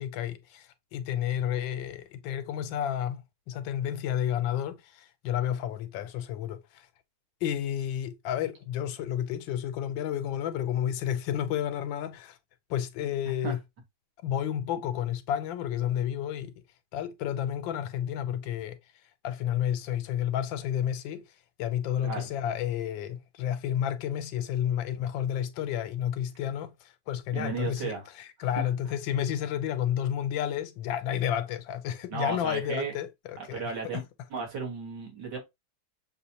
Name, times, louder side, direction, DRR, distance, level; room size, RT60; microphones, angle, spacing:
voice 1, 0.0-6.9 7.4-12.4 12.7-13.6 14.2-16.5 16.9-18.8 19.2-21.3 21.6-34.0, left 10 dB, 85° left, 1.3 m, -31 dB
voice 2, 27.3-28.0 28.6-28.7 32.1-32.9 33.5-34.0 34.3-35.4, right 5 dB, 60° right, 2.1 m, -34 dB
6.5 x 2.5 x 2.8 m
omnidirectional pair, 2.1 m